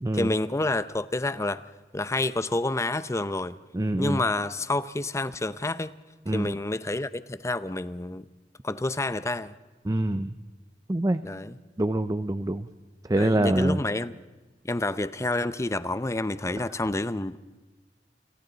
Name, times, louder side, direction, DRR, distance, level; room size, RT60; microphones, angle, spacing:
voice 1, 0.1-1.6 1.9-3.6 4.0-5.9 6.3-8.2 8.6-9.5 11.2-11.6 13.2-14.2 14.6-17.4, left 2 dB, 15° left, 0.6 m, -28 dB
voice 2, 3.7-4.2 6.3-6.5 9.8-10.3 10.9-11.2 11.8-12.7 13.1-13.8, right 1 dB, 20° right, 0.6 m, -25 dB
29.5 x 26.5 x 4.0 m
head